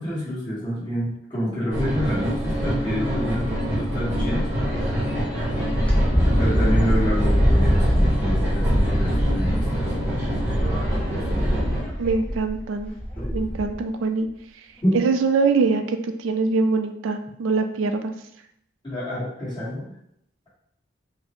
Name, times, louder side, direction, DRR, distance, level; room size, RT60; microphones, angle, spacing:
voice 1, 0.0-4.7 6.4-9.9 10.2-10.3 11.0-11.4 13.2-13.4 14.8-14.9 18.8-19.8, equal, 25° left, -10 dB, 1.3 m, -28 dB
sound 1, 1.7-11.8, equal, 10° right, 0.9 m, -25 dB
Wind, 5.7-13.8, equal, 5° left, 0.5 m, -23 dB
voice 2, 12.0-12.9 13.3-14.3 14.9-18.1, right 4 dB, 85° right, 8 dB, 0.3 m, -23 dB
3.9 x 2.0 x 3.0 m, 0.75 s
head